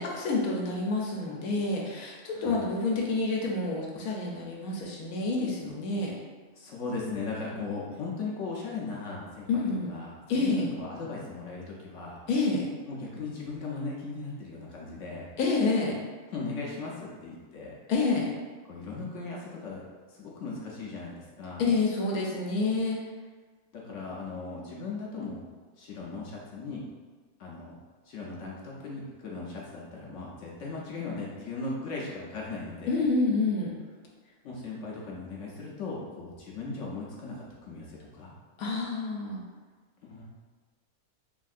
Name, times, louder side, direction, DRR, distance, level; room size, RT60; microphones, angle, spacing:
voice 1, 0.0-6.1 9.5-9.9 10.3-10.7 12.3-12.7 15.4-16.0 17.9-18.3 21.6-23.0 32.9-33.7 38.6-39.4, left 3 dB, 85° left, -2 dB, 1.1 m, -28 dB
voice 2, 2.3-2.6 6.6-12.2 12.9-15.3 16.3-17.7 18.7-19.8 20.1-21.6 23.7-25.4 25.8-26.8 27.4-27.8 28.1-33.1 34.4-38.3 40.0-40.2, left 3 dB, 65° left, -4 dB, 0.8 m, -38 dB
3.5 x 2.6 x 2.4 m, 1.4 s
omnidirectional pair, 1.5 m